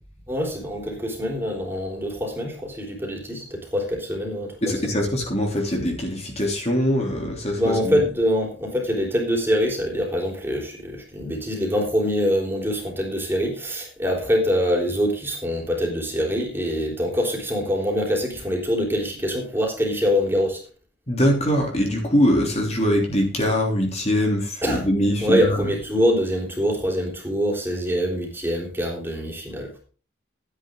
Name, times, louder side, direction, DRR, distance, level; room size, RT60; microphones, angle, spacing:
voice 1, 0.3-4.8 7.6-20.6 24.6-24.9 25.2-29.7, equal, 10° right, 0 dB, 3.7 m, -24 dB
voice 2, 4.6-8.0 21.1-25.6, equal, 35° left, 1 dB, 3.1 m, -22 dB
13.0 x 10.0 x 3.8 m, 0.37 s
head